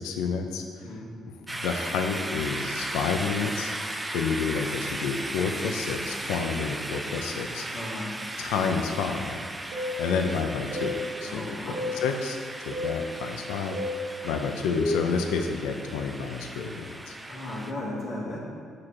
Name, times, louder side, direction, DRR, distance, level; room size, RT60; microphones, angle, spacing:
voice 1, 0.0-3.7 4.1-7.6 8.4-9.4 10.0-12.4 12.6-13.8 14.2-17.2, left 5 dB, 85° left, 4 dB, 0.5 m, -30 dB
voice 2, 0.8-1.2 7.7-8.1 11.2-11.8 17.3-18.4, left 1 dB, 60° left, -6 dB, 1.5 m, -35 dB
sound 1, 1.5-17.7, right 1 dB, 15° right, 0.4 m, -36 dB
sound 2, 9.7-10.0 10.7-11.0 11.7-12.0 12.7-13.0 13.7-14.0 14.7-15.0, left 1 dB, 65° right, 1.0 m, -30 dB
6.4 x 4.7 x 3.7 m, 2.2 s
supercardioid pair, 65°, 0 cm